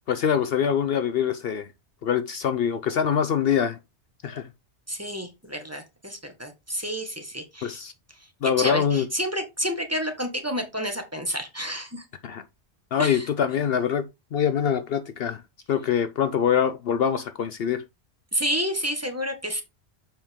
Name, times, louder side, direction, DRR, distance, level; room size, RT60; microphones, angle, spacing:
voice 1, 0.1-1.7 2.0-3.8 4.2-4.5 7.6-7.9 8.4-9.1 12.2-12.4 12.9-15.4 15.7-17.8, left 8 dB, 65° left, 0.8 m, -24 dB
voice 2, 4.9-7.8 8.6-12.0 13.0-13.3 18.3-19.6, equal, 15° right, 1.5 m, -30 dB
7.2 x 5.3 x 3.6 m
omnidirectional pair, 1.1 m